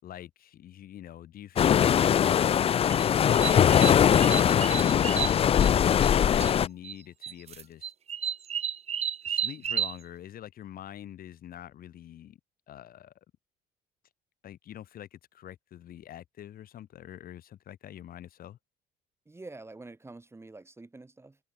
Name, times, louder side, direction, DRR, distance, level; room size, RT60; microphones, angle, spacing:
voice 1, 0.0-2.8 3.6-5.5 6.2-7.9 9.3-12.4 12.7-13.1 14.4-18.6, left 11 dB, 60° left, 3.7 m, -45 dB
sound 1, 1.6-6.7, left 9 dB, 35° left, 0.4 m, -21 dB
sound 2, 2.8-6.1 6.4-7.0 7.2-10.0, right 8 dB, 40° right, 0.7 m, -32 dB
voice 2, 19.2-21.4, right 2 dB, 15° right, 6.7 m, -47 dB
cardioid pair, 110°, 17 cm